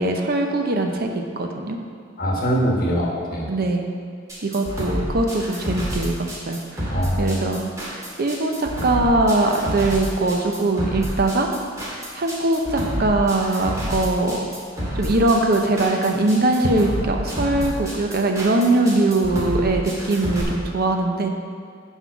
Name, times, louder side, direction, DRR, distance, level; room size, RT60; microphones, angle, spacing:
voice 1, 0.0-1.8 3.5-3.9 4.4-7.7 8.2-11.5 12.1-14.5 14.9-21.3, right 2 dB, 55° right, 3 dB, 0.7 m, -21 dB
voice 2, 2.2-3.5 6.9-7.5, equal, 50° left, -2 dB, 1.4 m, -23 dB
sound 1, 4.3-20.4, equal, 20° right, 2.0 m, -29 dB
5.8 x 5.5 x 6.1 m, 2.2 s
head